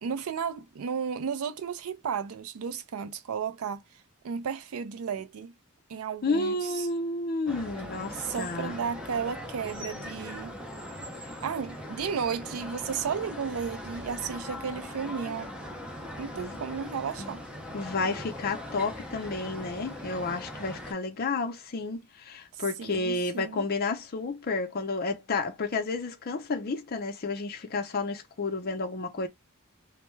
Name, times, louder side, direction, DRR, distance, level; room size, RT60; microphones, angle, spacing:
voice 1, 0.0-3.8 4.2-5.5 5.9-6.9 8.1-10.5 11.4-15.5 16.2-17.4 22.5-23.7, right 6 dB, 70° right, 0.4 m, -33 dB
voice 2, 6.2-8.8 16.4-16.6 17.2-17.4 17.7-29.3, left 3 dB, 45° left, 0.5 m, -31 dB
sound 1, 7.5-20.9, left 1 dB, 5° right, 0.5 m, -40 dB
2.2 x 2.1 x 3.1 m
head